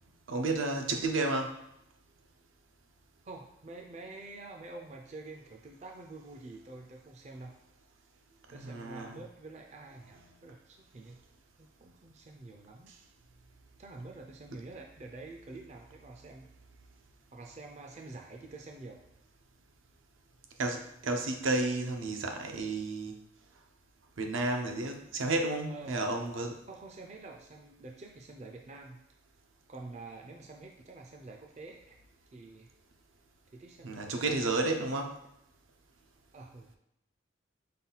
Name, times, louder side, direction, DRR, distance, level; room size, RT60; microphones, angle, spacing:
voice 1, 0.3-1.6 8.5-9.2 20.6-23.2 24.2-26.6 33.8-35.2, right 2 dB, 80° right, 4 dB, 0.6 m, -32 dB
voice 2, 3.2-7.6 8.5-11.2 11.6-12.9 13.8-16.5 17.3-19.0 25.7-26.1 26.7-29.0 29.7-32.0 32.3-32.7 33.5-34.4 36.3-36.7, right 3 dB, 35° right, 2 dB, 0.4 m, -47 dB
5.5 x 2.3 x 3.9 m, 0.82 s
head